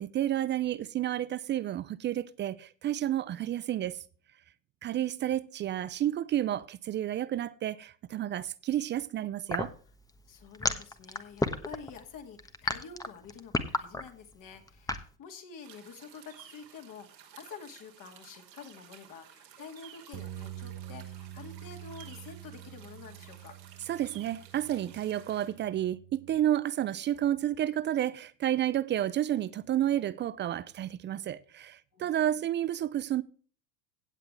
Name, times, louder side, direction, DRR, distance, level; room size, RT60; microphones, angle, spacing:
voice 1, 0.0-4.0 4.8-9.7 23.9-33.2, right 12 dB, 25° right, 0.4 m, -31 dB
sound 1, 9.5-15.1, left 2 dB, 5° left, 1.2 m, -31 dB
voice 2, 10.3-23.5 31.9-32.2, left 6 dB, 40° left, 2.4 m, -48 dB
sound 2, 15.6-25.5, right 10 dB, 85° right, 3.3 m, -54 dB
sound 3, 20.1-26.4, right 12 dB, 40° right, 1.0 m, -46 dB
16.5 x 7.9 x 3.3 m
hypercardioid pair, 105°, 49 cm